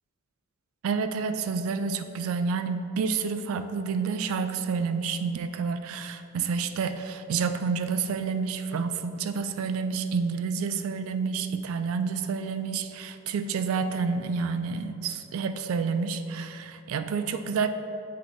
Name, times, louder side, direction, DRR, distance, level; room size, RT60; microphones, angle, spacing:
voice 1, 0.8-17.7, right 5 dB, 70° right, 10 dB, 0.3 m, -29 dB
7.7 x 3.2 x 3.8 m, 2.8 s
head